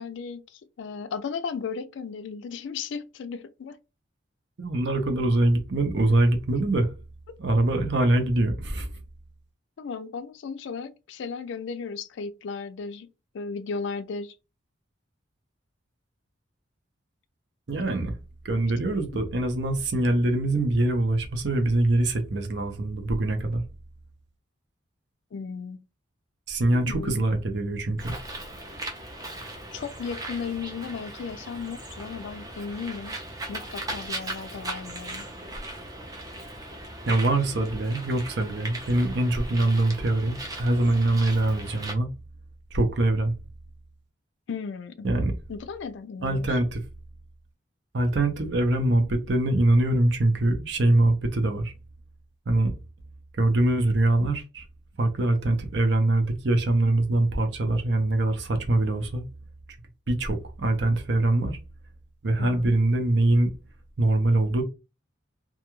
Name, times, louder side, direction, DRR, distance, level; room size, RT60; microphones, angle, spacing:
voice 1, 0.0-3.8 9.8-13.1 13.3-14.3 19.1-19.2 25.3-25.8 26.7-27.2 29.7-33.1 33.5-35.2 44.5-45.1 45.5-46.6 62.4-62.7, left 5 dB, 70° left, 0.3 m, -35 dB
voice 2, 4.6-6.9 7.4-8.9 17.7-18.1 18.4-23.6 26.5-28.1 37.1-42.1 42.7-43.3 45.0-45.3 46.2-46.8 47.9-51.7 52.5-52.7 53.4-54.6 55.0-59.2 60.1-61.6 62.2-63.5 64.0-64.6, right 2 dB, 60° right, 0.6 m, -23 dB
Bird, 28.0-41.9, right 1 dB, 20° right, 0.4 m, -38 dB
2.3 x 2.2 x 2.9 m
head